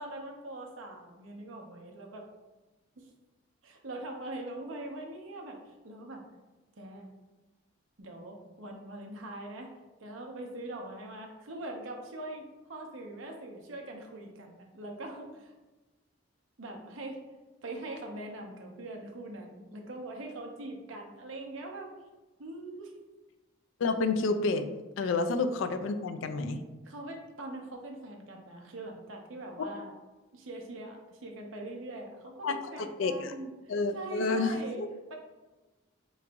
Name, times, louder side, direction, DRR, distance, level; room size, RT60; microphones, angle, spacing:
voice 1, 0.0-2.3 3.0-3.1 3.6-6.2 6.8-7.1 8.0-9.7 10.0-15.5 16.6-17.2 17.6-21.9 22.4-23.0 25.0-25.1 26.8-29.9 30.3-35.1, right 2 dB, 80° right, 2 dB, 0.7 m, -42 dB
voice 2, 23.8-24.7 25.0-26.6 32.4-33.3 33.7-34.9, left 3 dB, 75° left, 8 dB, 0.4 m, -30 dB
3.8 x 3.1 x 3.4 m, 1.1 s
head